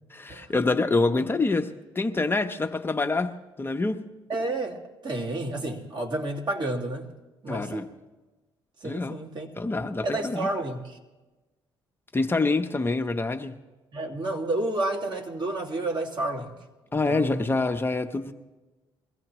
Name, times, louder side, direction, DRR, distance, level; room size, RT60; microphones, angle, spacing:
voice 1, 0.1-4.0 7.5-7.9 8.8-9.2 9.6-10.5 12.1-13.6 16.9-18.3, left 3 dB, 20° left, 5 dB, 0.8 m, -26 dB
voice 2, 4.3-7.1 7.4-7.9 8.8-9.5 10.0-11.0 13.9-16.5 16.9-17.5, right 2 dB, 45° right, 0 dB, 2.2 m, -30 dB
22.5 x 15.5 x 3.1 m, 1.2 s
cardioid pair, 80°, 10 cm